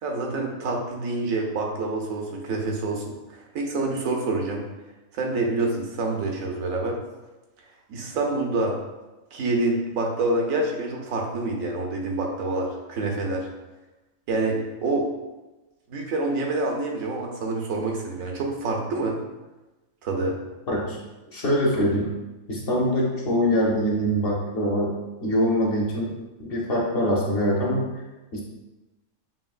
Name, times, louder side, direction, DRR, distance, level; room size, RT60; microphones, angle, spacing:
voice 1, 0.0-4.6 5.1-7.0 7.9-8.8 9.3-13.5 14.3-15.1 15.9-19.2 20.0-20.4, right 2 dB, 90° right, 1 dB, 1.1 m, -27 dB
voice 2, 20.7-21.0 21.3-22.1 22.5-24.9 25.2-26.1 26.4-27.9 28.3-28.4, equal, 50° left, -3 dB, 0.9 m, -23 dB
5.4 x 2.8 x 2.4 m, 1.1 s
omnidirectional pair, 1.4 m